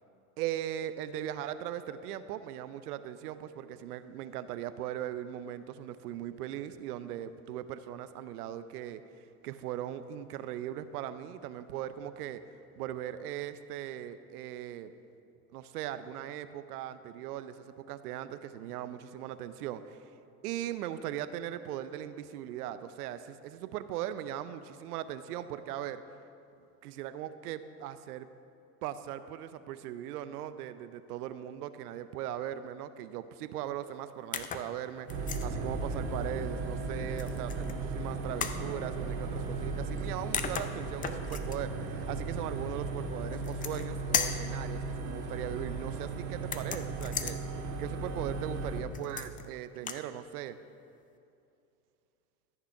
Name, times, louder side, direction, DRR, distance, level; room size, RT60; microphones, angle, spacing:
voice 1, 0.4-9.0 9.4-12.4 12.8-14.9 15.5-20.0 20.4-26.0 26.8-28.3 28.8-50.6, right 11 dB, 75° right, 12 dB, 0.7 m, -39 dB
sound 1, 34.3-34.7 35.1-35.5 37.2-37.8 38.4-38.6 40.0-40.1 40.3-41.6 43.3-43.9 44.1-44.5 46.4-47.4 48.9-49.5 49.8-50.0, left 7 dB, 20° left, 0.4 m, -35 dB
sound 2, 35.1-48.8, right 3 dB, 55° right, 1.9 m, -36 dB
13.5 x 6.1 x 5.4 m, 2.5 s
hypercardioid pair, 95°, 46 cm